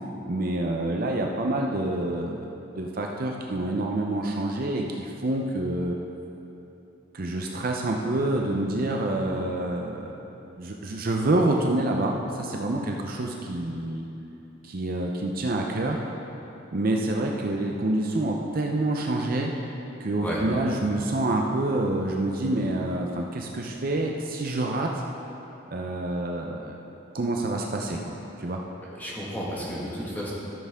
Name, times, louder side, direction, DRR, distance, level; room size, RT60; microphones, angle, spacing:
voice 1, 0.3-6.0 7.1-10.2 10.6-14.1 14.6-16.0 16.7-19.5 20.0-24.9 25.7-28.6, right 2 dB, 45° right, 1 dB, 0.6 m, -27 dB
voice 2, 28.8-30.3, equal, 10° left, -6 dB, 1.7 m, -33 dB
13.5 x 6.7 x 3.6 m, 3.0 s
head